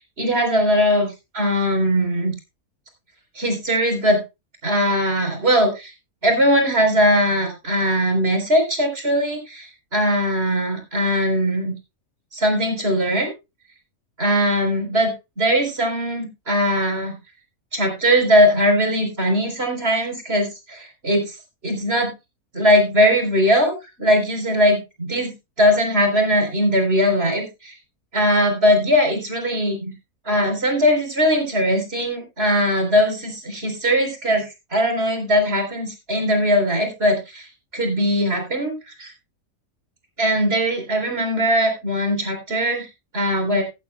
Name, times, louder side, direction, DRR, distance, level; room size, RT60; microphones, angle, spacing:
voice 1, 0.2-1.1 1.3-2.3 3.4-4.2 4.6-5.9 6.2-9.7 9.9-11.7 12.3-13.3 14.2-17.1 17.7-21.3 21.6-22.1 22.5-25.3 25.6-27.7 28.1-29.9 30.3-34.4 34.7-37.5 37.7-38.7 39.0-39.1 40.2-42.9 43.1-43.6, equal, 40° right, 4 dB, 4.1 m, -20 dB
16.0 x 11.0 x 2.2 m, 0.25 s
omnidirectional pair, 1.6 m